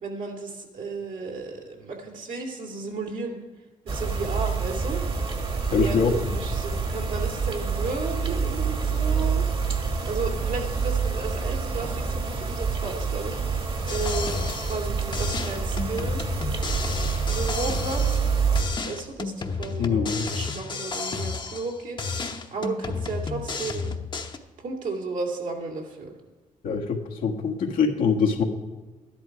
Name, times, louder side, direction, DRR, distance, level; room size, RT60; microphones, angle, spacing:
voice 1, 0.0-3.4 3.8-5.0 5.7-9.5 10.0-13.4 13.9-16.2 17.3-18.2 18.8-23.9 24.6-26.1, right 3 dB, 70° right, 0 dB, 2.6 m, -33 dB
sound 1, 3.9-18.6, right 5 dB, 40° right, 1.7 m, -27 dB
voice 2, 5.7-6.1 19.8-20.3 26.6-28.4, left 5 dB, 85° left, 0 dB, 1.5 m, -23 dB
sound 2, 13.9-14.9 15.1-18.3 18.6-21.7 22.0-24.4, left 4 dB, 35° left, 0.9 m, -32 dB
12.0 x 11.0 x 4.8 m, 1.2 s
cardioid pair, 90°, 14 cm